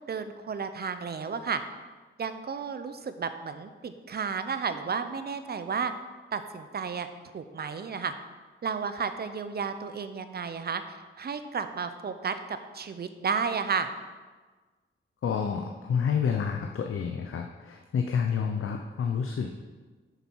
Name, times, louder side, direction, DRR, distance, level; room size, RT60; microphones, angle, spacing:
voice 1, 0.1-1.6 2.2-5.9 6.3-7.1 7.3-8.1 8.6-13.9, right 6 dB, 50° right, 10 dB, 0.6 m, -32 dB
voice 2, 15.2-19.5, left 6 dB, 85° left, 3 dB, 0.6 m, -29 dB
8.5 x 6.8 x 4.6 m, 1.4 s
wide cardioid pair, 155°, 21 cm